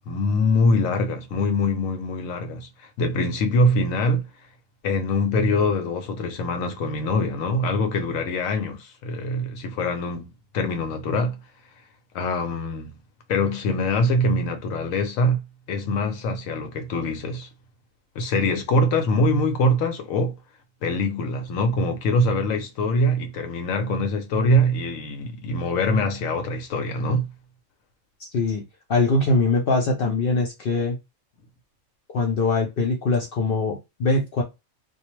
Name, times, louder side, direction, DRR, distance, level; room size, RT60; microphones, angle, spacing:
voice 1, 0.1-4.2 4.8-11.4 12.1-13.0 13.3-17.5 18.2-20.4 20.8-27.3, left 1 dB, 85° left, 1.0 m, -23 dB
voice 2, 28.3-28.6 28.9-31.0 32.1-34.4, left 3 dB, 60° left, 0.6 m, -22 dB
2.5 x 2.0 x 3.0 m
omnidirectional pair, 1.4 m